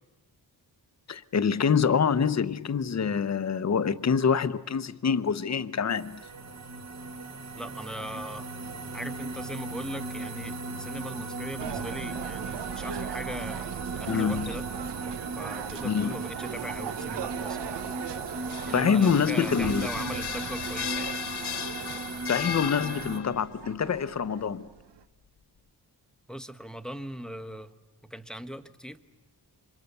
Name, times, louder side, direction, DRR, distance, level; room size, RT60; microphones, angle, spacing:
voice 1, 1.1-6.2 14.1-14.6 15.8-16.1 18.7-19.9 22.2-24.7, left 6 dB, 40° left, 0.8 m, -26 dB
sound 1, 5.9-23.2, right 3 dB, 40° right, 1.3 m, -37 dB
voice 2, 7.6-8.5 8.9-14.7 15.4-17.9 18.7-21.2 26.3-27.7 28.0-29.0, equal, ahead, 1.0 m, -39 dB
sound 2, 11.6-25.0, right 8 dB, 85° right, 0.9 m, -39 dB
sound 3, 18.3-23.4, left 8 dB, 70° left, 1.0 m, -36 dB
29.0 x 25.5 x 6.7 m
wide cardioid pair, 140°, 40 cm